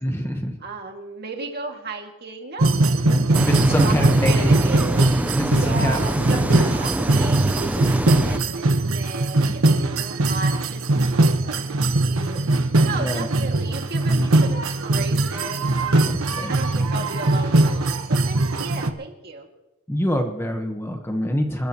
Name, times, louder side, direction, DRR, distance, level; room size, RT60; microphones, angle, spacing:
voice 1, 0.0-0.6 3.0-4.5 5.3-6.0 6.3-6.7 9.4-9.6 12.9-13.3 14.2-14.3 16.0-16.6 19.9-21.7, equal, 10° left, 4 dB, 1.2 m, -25 dB
voice 2, 0.6-2.8 3.3-3.4 3.7-5.0 5.6-19.5, right 3 dB, 45° right, 2 dB, 2.1 m, -35 dB
sound 1, 2.6-18.9, right 2 dB, 70° right, 1.1 m, -21 dB
sound 2, 3.3-8.4, right 1 dB, 5° right, 0.4 m, -25 dB
28.0 x 14.0 x 3.0 m, 1.0 s
head